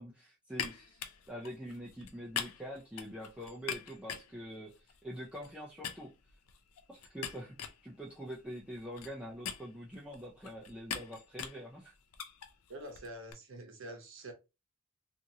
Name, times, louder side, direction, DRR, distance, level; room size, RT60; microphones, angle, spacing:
voice 1, 0.0-6.1 6.9-11.9, equal, 5° right, 0.4 m, -45 dB
sound 1, 0.5-5.5 5.8-13.3, left 8 dB, 80° left, 0.5 m, -44 dB
voice 2, 12.7-14.3, right 1 dB, 60° right, 0.8 m, -46 dB
2.8 x 2.5 x 2.6 m
head